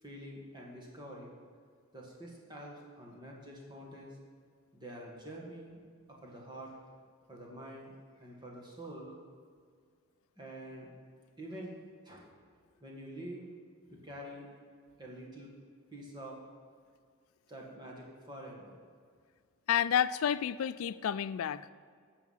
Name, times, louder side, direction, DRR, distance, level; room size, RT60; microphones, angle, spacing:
voice 1, 0.0-1.4 1.9-4.2 4.7-5.8 6.1-6.8 7.3-7.9 8.2-9.1 10.4-10.9 11.4-11.8 12.0-12.3 12.8-13.5 13.9-14.5 15.0-15.5 15.9-16.4 17.5-18.7, right 1 dB, 20° right, -2 dB, 1.7 m, -46 dB
voice 2, 19.7-21.7, left 9 dB, 75° left, 16 dB, 0.3 m, -30 dB
12.0 x 7.0 x 5.7 m, 2.1 s
head